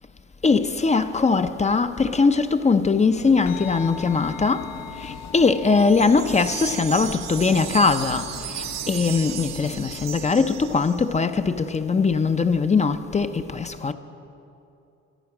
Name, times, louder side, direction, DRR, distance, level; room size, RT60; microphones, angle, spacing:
voice 1, 0.4-4.7 5.0-8.3 8.9-13.9, left 4 dB, 25° left, 0.5 m, -21 dB
sound 1, 3.2-10.6, left 7 dB, 60° left, 0.8 m, -41 dB
sound 2, 3.5-12.1, left 5 dB, 80° left, 1.3 m, -44 dB
sound 3, 5.8-11.2, right 11 dB, 65° right, 0.6 m, -35 dB
13.0 x 11.0 x 6.0 m
cardioid pair, 90°, 30 cm